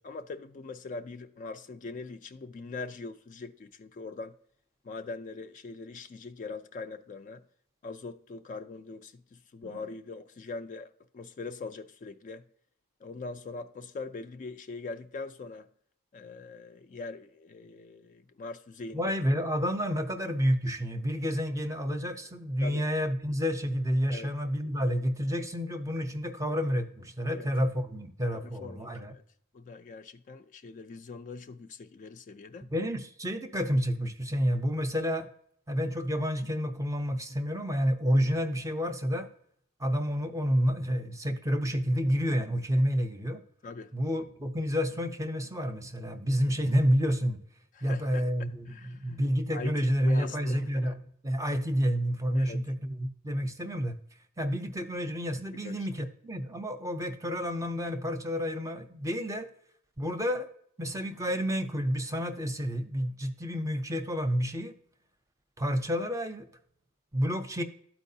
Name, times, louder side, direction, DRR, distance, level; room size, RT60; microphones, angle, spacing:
voice 1, 0.0-4.3 4.8-7.4 7.8-12.4 13.0-15.7 16.1-19.2 22.6-22.9 24.1-24.3 27.3-27.5 28.3-28.9 29.5-32.7 43.6-43.9 47.7-48.3 48.7-49.2 49.5-50.9 52.3-52.6 55.5-55.9, left 3 dB, 35° left, 0.3 m, -42 dB
voice 2, 18.9-29.1 32.7-35.3 35.7-39.3 39.8-43.4 43.9-47.4 47.8-50.9 51.2-54.0 54.4-59.5 60.0-60.5 60.8-64.7 65.6-66.5 67.1-67.6, equal, 15° right, 0.6 m, -29 dB
12.5 x 4.5 x 2.7 m
head